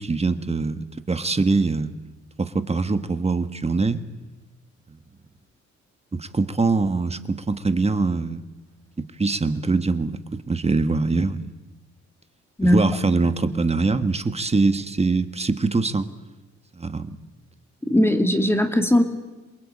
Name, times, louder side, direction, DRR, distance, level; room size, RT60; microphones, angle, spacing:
voice 1, 0.0-1.9 2.4-4.0 6.1-8.4 9.0-11.5 12.6-16.1 16.8-17.1, right 3 dB, 20° right, 10 dB, 1.5 m, -23 dB
voice 2, 17.9-19.0, left 1 dB, 10° left, 5 dB, 2.3 m, -18 dB
27.5 x 20.0 x 8.8 m, 1.1 s
cardioid pair, 90°, 30 cm